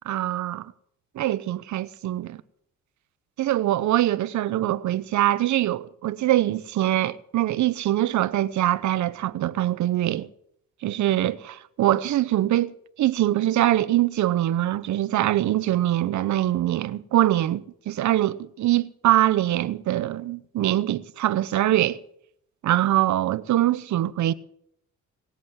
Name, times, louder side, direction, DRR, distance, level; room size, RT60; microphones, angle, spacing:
voice 1, 0.1-0.7 1.2-2.4 3.4-10.3 10.8-12.7 13.0-22.0 22.6-24.3, right 14 dB, 70° right, 0.8 m, -23 dB
19.0 x 8.4 x 7.5 m
cardioid pair, 90°, 30 cm